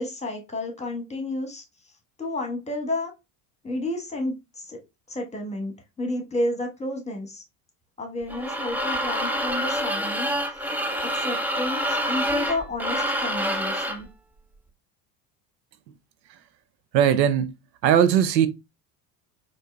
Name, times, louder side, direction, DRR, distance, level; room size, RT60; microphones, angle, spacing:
voice 1, 0.0-1.6 2.2-3.1 3.6-4.8 5.1-5.7 6.0-7.4 8.0-10.3 11.0-14.1, left 1 dB, 15° left, 1.3 m, -31 dB
sound 1, 8.3-14.1, equal, 5° right, 0.3 m, -27 dB
voice 2, 16.9-17.5 17.8-18.5, right 9 dB, 85° right, 0.6 m, -19 dB
4.3 x 2.7 x 2.2 m
hypercardioid pair, 75°, 49 cm